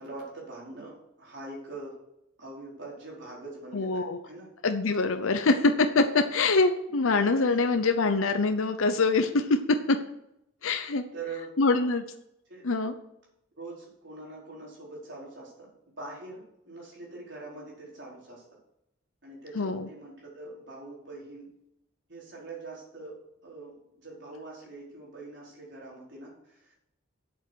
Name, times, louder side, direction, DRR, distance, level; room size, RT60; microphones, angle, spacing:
voice 1, 0.0-2.0 2.4-4.5 5.2-5.5 11.1-11.5 12.5-12.7 13.6-18.4 19.2-21.5 22.1-23.2 23.4-26.7, right 3 dB, 60° right, -4 dB, 4.6 m, -43 dB
voice 2, 3.7-4.2 4.6-10.0 10.6-11.0 11.6-12.0 12.6-12.9 19.6-19.9, left 3 dB, 80° left, 7 dB, 0.8 m, -24 dB
8.2 x 7.9 x 6.4 m, 0.80 s
head